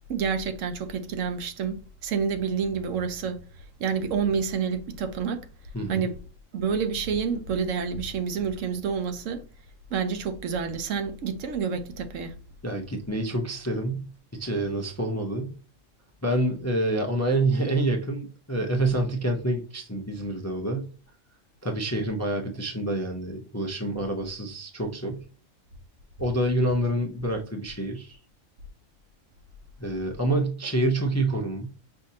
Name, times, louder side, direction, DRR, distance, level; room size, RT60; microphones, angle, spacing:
voice 1, 0.1-3.4 3.8-5.4 5.9-6.2 6.5-9.4 9.9-12.4, right 6 dB, 75° right, 1.0 m, -28 dB
voice 2, 5.7-6.1 12.6-15.5 16.2-20.9 21.6-25.2 26.2-28.2 29.8-31.7, right 1 dB, 20° left, 0.4 m, -27 dB
5.6 x 2.6 x 2.7 m
omnidirectional pair, 1.4 m